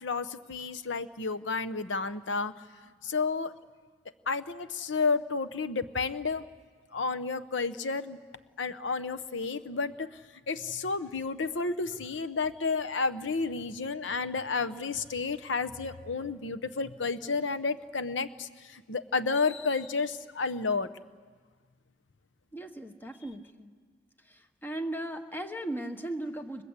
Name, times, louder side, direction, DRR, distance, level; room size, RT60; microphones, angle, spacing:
voice 1, 0.0-2.5 3.0-3.5 4.3-6.4 6.9-8.2 8.6-10.1 10.5-20.9, left 4 dB, 85° left, 13 dB, 0.9 m, -31 dB
voice 2, 22.5-23.7 24.3-26.6, right 1 dB, 10° left, 7 dB, 1.3 m, -37 dB
29.5 x 23.0 x 8.2 m, 1.5 s
head